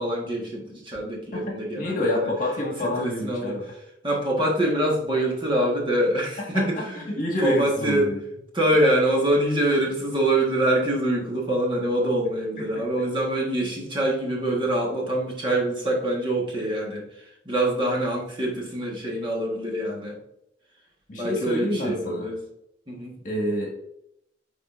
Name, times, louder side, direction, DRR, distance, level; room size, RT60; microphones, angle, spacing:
voice 1, 0.0-2.3 2.8-3.6 4.0-7.1 7.4-8.2 8.5-20.2 21.2-22.4 22.9-23.1, right 1 dB, 25° right, -2 dB, 1.4 m, -25 dB
voice 2, 1.3-3.7 6.5-8.2 21.1-22.3 23.2-23.8, left 1 dB, 40° left, -1 dB, 1.5 m, -28 dB
9.9 x 3.7 x 2.5 m, 0.78 s
head